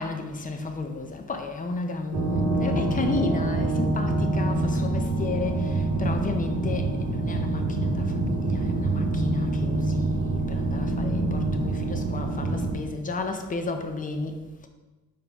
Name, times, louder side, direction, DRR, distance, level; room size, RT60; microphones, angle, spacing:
voice 1, 0.0-14.7, left 3 dB, 25° left, 0.6 m, -33 dB
sound 1, 2.1-12.8, right 2 dB, 55° right, 1.0 m, -26 dB
4.7 x 3.6 x 3.0 m
cardioid pair, 90°, 30 cm